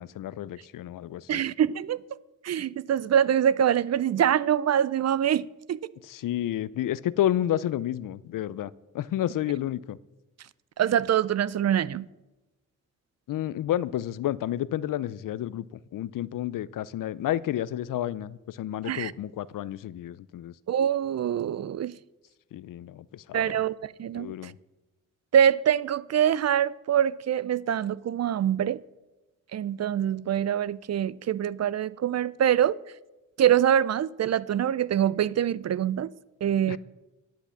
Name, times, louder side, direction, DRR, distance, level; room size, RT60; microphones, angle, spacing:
voice 1, 0.0-1.4 6.1-10.0 13.3-15.7 15.9-20.5 22.5-23.6 24.1-24.5 36.7-36.8, left 12 dB, 85° left, 0.5 m, -30 dB
voice 2, 1.3-2.0 2.4-5.8 10.8-12.1 18.8-19.1 20.7-22.0 23.3-24.5 25.3-28.8 29.5-32.8 33.4-36.1 36.4-36.8, right 9 dB, 55° right, 0.4 m, -24 dB
10.5 x 5.9 x 8.3 m
cardioid pair, 65°, 32 cm